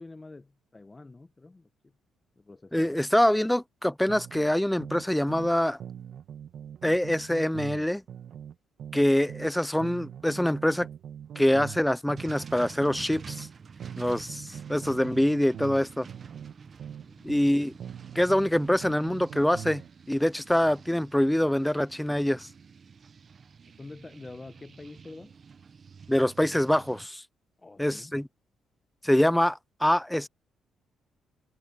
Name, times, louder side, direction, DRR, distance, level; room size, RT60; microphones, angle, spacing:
voice 1, 0.0-1.7 2.4-3.0 17.0-17.3 23.8-25.3 27.6-28.1, left 3 dB, 20° left, 1.0 m, -46 dB
voice 2, 2.7-5.8 6.8-8.0 8.9-10.9 11.4-13.5 14.0-16.1 17.2-17.7 18.2-19.8 20.1-22.5 26.1-27.2 27.8-28.3 29.0-30.3, left 1 dB, 5° left, 0.3 m, -25 dB
sound 1, 4.1-5.5 5.8-9.5 9.8-13.5 13.8-17.5 17.8-19.9, right 9 dB, 65° right, 1.8 m, -42 dB
sound 2, 12.2-27.1, right 6 dB, 45° right, 0.7 m, -48 dB
cardioid pair, 90°, 0 cm